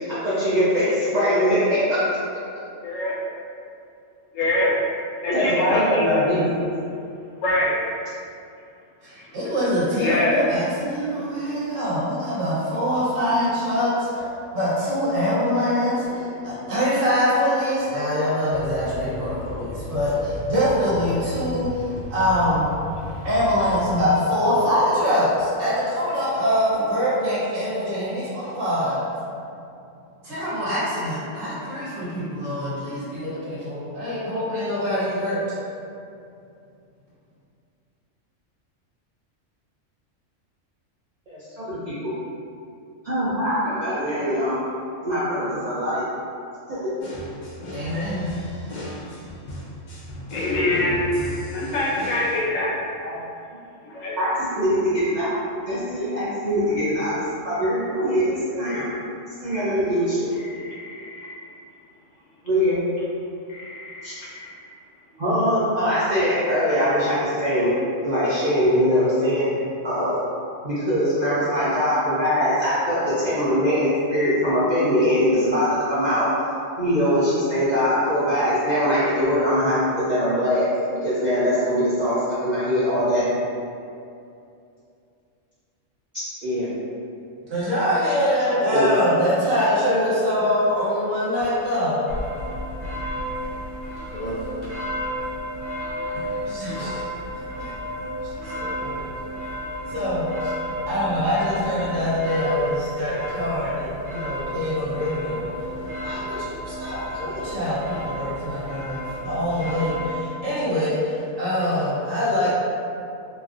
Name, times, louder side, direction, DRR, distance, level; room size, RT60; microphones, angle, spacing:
voice 1, 0.1-2.0 5.3-6.7 41.3-42.1 43.0-44.6 45.0-46.0 46.7-46.9 53.0-53.1 54.2-54.3 54.5-55.3 55.7-57.1 57.4-58.8 59.4-60.3 62.4-62.8 64.0-64.1 65.2-67.7 68.0-69.6 69.8-70.2 70.6-76.3 76.8-83.3 86.4-86.7 88.7-88.9 89.9-90.0 94.1-94.4, equal, 55° right, -11 dB, 0.5 m, -22 dB
voice 2, 2.8-3.1 4.3-4.7 5.2-6.1 7.4-7.8 10.0-10.4 26.8-26.9 50.3-51.0 51.5-52.8 53.8-54.2 60.4-61.3 63.5-64.5, left 1 dB, 85° left, -6 dB, 1.1 m, -25 dB
voice 3, 9.0-14.2 14.5-22.7 23.2-29.0 30.2-35.4 47.7-48.3 87.5-92.0 96.4-97.0 97.6-97.7 98.2-99.0 99.9-100.5 100.9-105.5 106.0-112.5, equal, 90° right, -10 dB, 1.3 m, -24 dB
sound 1, 18.5-24.0, left 2 dB, 5° right, 0.8 m, -36 dB
sound 2, 47.0-52.4, equal, 55° left, 0.5 m, -35 dB
sound 3, 92.1-110.1, equal, 75° right, 1.1 m, -32 dB
3.0 x 2.4 x 2.5 m, 2.5 s
omnidirectional pair, 1.3 m